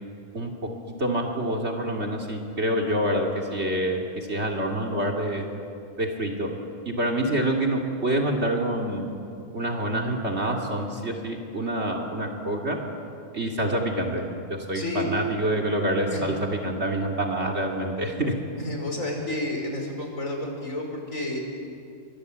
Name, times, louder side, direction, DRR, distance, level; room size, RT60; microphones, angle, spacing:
voice 1, 0.3-0.7 1.0-5.4 6.0-6.5 6.8-9.1 9.5-12.8 13.3-14.2 14.5-18.3, right 1 dB, 55° right, 0 dB, 3.0 m, -27 dB
voice 2, 14.7-15.1 16.1-16.2 18.6-21.4, left 2 dB, 90° left, 1 dB, 5.7 m, -30 dB
30.0 x 24.5 x 8.2 m, 2.5 s
omnidirectional pair, 1.3 m